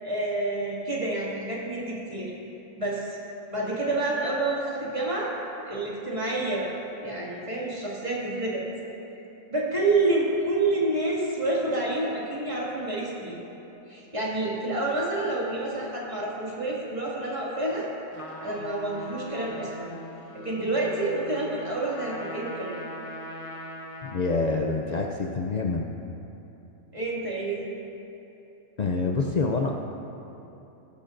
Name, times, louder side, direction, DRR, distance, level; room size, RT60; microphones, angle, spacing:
voice 1, 0.0-2.3 2.8-3.2 3.5-5.3 5.7-6.7 7.0-8.7 9.5-13.4 13.9-17.9 18.4-19.9 20.3-22.8 26.9-27.7, right 2 dB, 20° right, -6 dB, 2.2 m, -28 dB
Trumpet, 18.1-24.4, left 1 dB, 25° left, 1.0 m, -41 dB
voice 2, 24.0-25.9 28.8-29.7, left 3 dB, 75° left, 1 dB, 0.3 m, -26 dB
18.5 x 12.0 x 2.6 m, 3.0 s
omnidirectional pair, 1.5 m